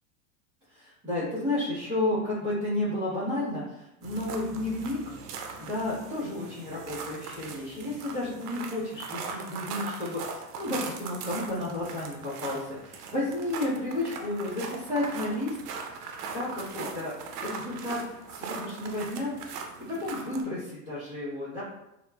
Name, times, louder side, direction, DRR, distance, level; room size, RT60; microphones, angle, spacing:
voice 1, 0.7-5.0 5.6-15.6 16.3-17.1 17.4-19.5 19.9-21.6, left 1 dB, 10° right, -15 dB, 0.5 m, -32 dB
sound 1, 4.0-20.4, right 5 dB, 80° right, 0.6 m, -40 dB
2.9 x 2.1 x 2.2 m, 0.89 s
supercardioid pair, 165°, 46 cm